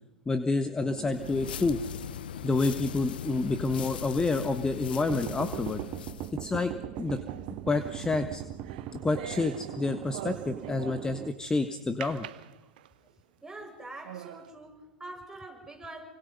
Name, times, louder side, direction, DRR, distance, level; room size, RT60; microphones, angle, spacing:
voice 1, 0.2-1.8 2.3-5.8 6.3-7.2 7.6-8.4 9.0-12.3, left 3 dB, 15° left, 1.5 m, -29 dB
sound 1, 0.8-3.1 3.5-3.6 5.1-11.3, right 12 dB, 45° right, 1.4 m, -40 dB
sound 2, 1.1-6.4, left 9 dB, 75° left, 0.8 m, -39 dB
sound 3, 6.9-11.3 12.0-13.1 13.6-13.7 14.0-14.5, right 13 dB, 70° right, 1.2 m, -44 dB
voice 2, 13.4-16.1, right 2 dB, 10° right, 7.1 m, -44 dB
28.5 x 25.0 x 5.5 m
hypercardioid pair, 95°, 5 cm